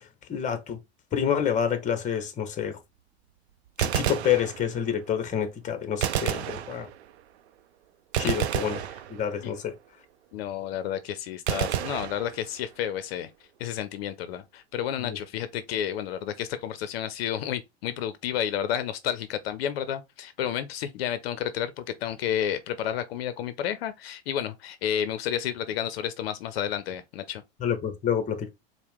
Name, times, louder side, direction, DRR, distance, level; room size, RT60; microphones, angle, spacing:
voice 1, 0.3-0.8 1.1-2.8 3.8-6.9 8.2-8.8 9.1-9.7 15.0-15.2 27.6-28.5, left 8 dB, 25° left, 0.8 m, -28 dB
Gunshot gunfire, 3.7-5.0 6.0-7.2 8.1-9.6 11.5-12.8, right 10 dB, 80° right, 0.5 m, -30 dB
voice 2, 10.3-13.3 13.6-27.4, left 10 dB, 70° left, 0.6 m, -31 dB
4.4 x 2.1 x 3.4 m
hypercardioid pair, 110°, 32 cm